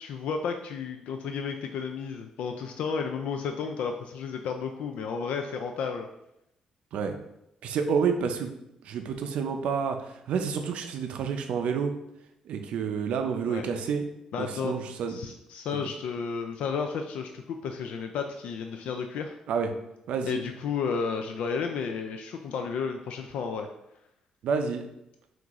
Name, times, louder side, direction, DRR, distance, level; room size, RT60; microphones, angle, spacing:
voice 1, 0.0-6.1 13.5-13.7 14.3-19.3 20.2-23.7, left 6 dB, 75° left, 5 dB, 0.3 m, -32 dB
voice 2, 7.6-8.5 8.8-11.9 12.5-14.0 14.4-15.2 15.7-15.8 19.5-19.7 20.1-20.4 24.4-24.8, right 6 dB, 70° right, 6 dB, 0.5 m, -29 dB
5.9 x 2.5 x 3.0 m, 0.82 s
cardioid pair, 165°, 2 cm